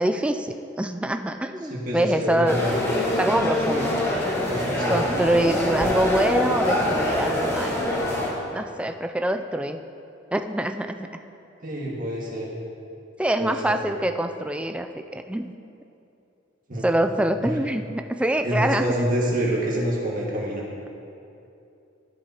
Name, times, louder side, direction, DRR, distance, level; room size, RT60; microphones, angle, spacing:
voice 1, 0.0-2.8 3.2-4.0 4.9-7.7 8.5-9.8 10.3-11.1 13.2-15.5 16.8-18.9, right 1 dB, 5° right, 7 dB, 0.3 m, -25 dB
voice 2, 1.7-2.7 4.5-5.5 11.6-12.5 13.4-13.8 16.7-16.8 18.4-20.6, right 1 dB, 45° right, -4 dB, 1.8 m, -27 dB
sound 1, 2.5-8.3, left 1 dB, 15° left, 1.5 m, -24 dB
13.0 x 7.7 x 2.9 m, 2.7 s
head